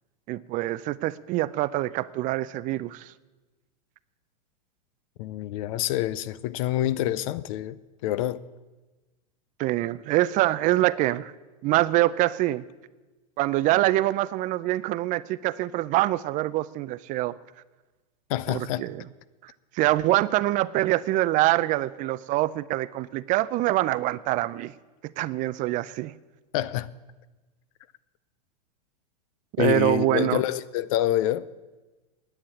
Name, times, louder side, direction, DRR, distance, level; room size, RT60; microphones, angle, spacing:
voice 1, 0.3-3.1 9.6-11.3 11.6-12.6 13.4-17.4 18.5-19.0 19.4-24.7 25.2-26.1 29.6-30.4, right 16 dB, 40° right, 0.5 m, -25 dB
voice 2, 5.2-8.4 18.3-18.8 26.5-26.9 29.6-31.5, left 13 dB, 55° left, 0.6 m, -27 dB
10.0 x 8.7 x 9.6 m
hypercardioid pair, 105°, 21 cm